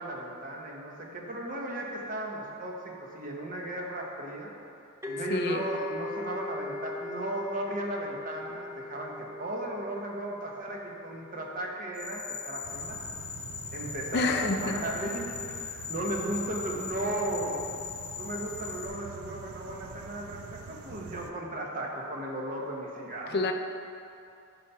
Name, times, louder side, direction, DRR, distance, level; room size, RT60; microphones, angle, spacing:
voice 1, 0.0-4.5 5.1-13.0 13.7-17.6 18.2-23.4, right 1 dB, 40° right, -1 dB, 1.1 m, -35 dB
sound 1, 5.0-12.6, left 3 dB, 10° right, 0.5 m, -41 dB
voice 2, 5.3-5.7 14.1-14.8 23.3-23.5, left 3 dB, 50° left, 5 dB, 0.5 m, -28 dB
sound 2, 11.9-18.9, left 7 dB, 5° left, 1.4 m, -40 dB
sound 3, 12.6-21.3, right 5 dB, 80° right, 0.5 m, -45 dB
10.5 x 4.2 x 5.6 m, 2.6 s
head